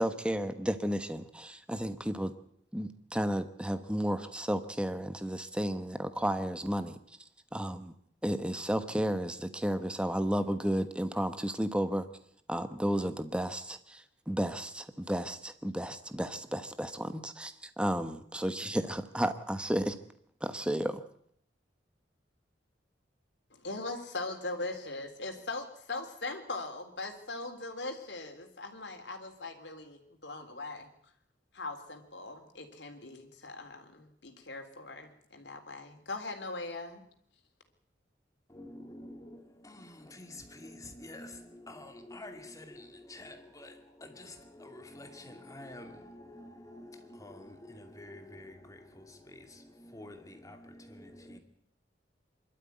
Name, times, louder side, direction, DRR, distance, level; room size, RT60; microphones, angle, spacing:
voice 1, 0.0-2.3 2.7-7.0 7.5-7.9 8.2-12.1 12.5-20.0 20.4-21.0, equal, 5° right, 1.2 m, -32 dB
voice 2, 23.5-30.9 31.5-37.0, left 2 dB, 75° left, 3.6 m, -40 dB
voice 3, 38.5-51.4, left 1 dB, 20° left, 2.5 m, -48 dB
24.5 x 13.0 x 9.5 m
head